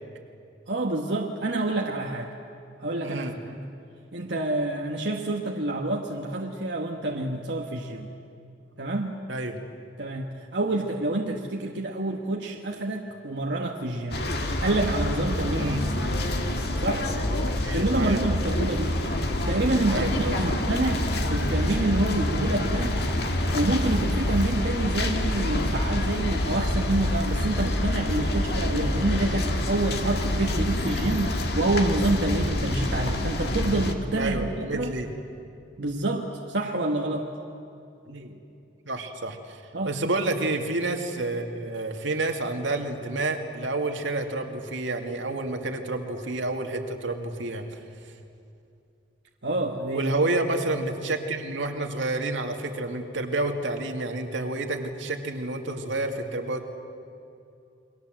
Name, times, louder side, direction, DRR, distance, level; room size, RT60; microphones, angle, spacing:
voice 1, 0.7-2.3 2.8-3.6 4.1-8.1 8.8-9.2 10.0-14.3 14.6-15.8 16.8-17.1 17.7-19.0 19.5-23.0 23.5-34.9 35.8-37.3 39.7-40.0 49.4-50.1, right 2 dB, 65° right, 0 dB, 1.4 m, -28 dB
voice 2, 2.9-3.3 9.3-9.6 15.6-15.8 17.6-18.2 19.9-20.6 34.2-35.1 38.1-38.4 38.9-47.8 49.9-56.6, right 2 dB, 85° right, 4 dB, 2.3 m, -29 dB
sound 1, 14.1-34.0, left 1 dB, 55° left, 1.9 m, -27 dB
29.0 x 22.0 x 7.8 m, 2.6 s
head